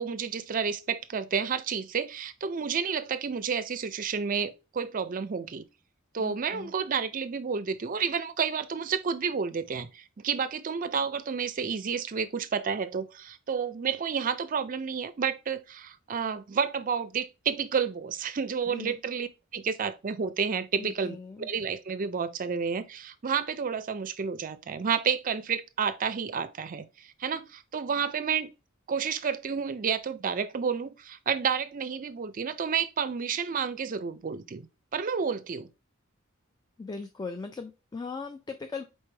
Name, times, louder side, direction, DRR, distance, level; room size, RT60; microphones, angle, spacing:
voice 1, 0.0-5.7 6.1-28.5 28.9-34.7 34.9-35.7, right 6 dB, 40° right, 0.4 m, -30 dB
voice 2, 6.2-6.7 18.7-19.0 20.8-21.5 36.8-38.8, left 4 dB, 20° left, 0.3 m, -39 dB
4.4 x 3.2 x 3.3 m
head